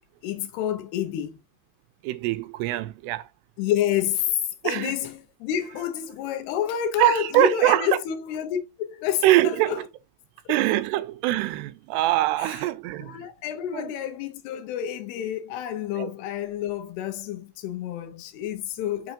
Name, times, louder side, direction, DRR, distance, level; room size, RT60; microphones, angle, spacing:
voice 1, 0.2-1.4 3.6-9.8 10.5-10.6 12.4-12.7 13.0-19.1, left 10 dB, 80° left, 2.9 m, -29 dB
voice 2, 2.0-3.3 4.6-5.0 7.0-7.9 9.2-9.8 10.5-13.3 13.7-13.9 16.0-16.1, right 15 dB, 90° right, 2.7 m, -23 dB
6.6 x 6.1 x 2.6 m
omnidirectional pair, 4.6 m